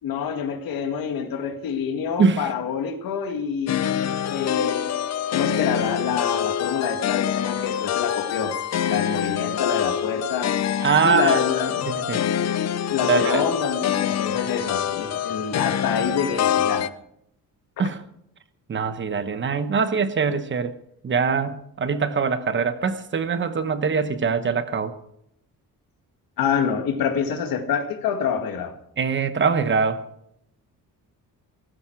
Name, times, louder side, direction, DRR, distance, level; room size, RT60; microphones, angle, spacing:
voice 1, 0.0-4.9 5.3-8.6 8.8-10.6 11.0-11.9 12.9-16.9 26.4-28.8, left 7 dB, 80° left, 2.2 m, -27 dB
voice 2, 2.2-2.5 10.8-11.4 11.9-12.2 13.1-13.5 17.8-18.0 18.7-20.8 21.0-25.0 29.0-30.0, right 5 dB, 35° right, 1.1 m, -23 dB
sound 1, 3.7-16.9, left 9 dB, 50° left, 0.7 m, -25 dB
17.5 x 15.0 x 4.7 m
cardioid pair, 165°, 34 cm